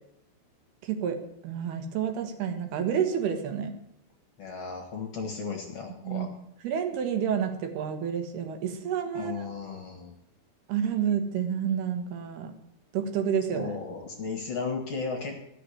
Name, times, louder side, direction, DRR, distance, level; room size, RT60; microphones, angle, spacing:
voice 1, 0.8-1.2 1.4-3.7 6.0-6.3 6.6-9.5 10.7-12.5 12.9-13.7, right 8 dB, 75° right, 6 dB, 3.3 m, -29 dB
voice 2, 4.4-6.3 9.1-10.1 13.5-15.4, left 4 dB, 45° left, 2 dB, 2.4 m, -35 dB
13.5 x 6.7 x 9.9 m, 0.78 s
omnidirectional pair, 4.6 m